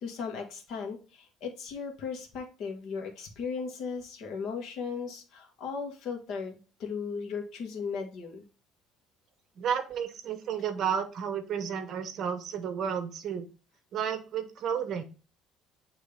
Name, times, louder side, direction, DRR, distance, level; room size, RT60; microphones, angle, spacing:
voice 1, 0.0-8.4, left 5 dB, 55° left, 3 dB, 1.6 m, -37 dB
voice 2, 9.6-13.5 13.9-15.0, right 8 dB, 45° right, 9 dB, 0.9 m, -32 dB
8.8 x 3.2 x 3.5 m, 0.34 s
cardioid pair, 160°, 0 cm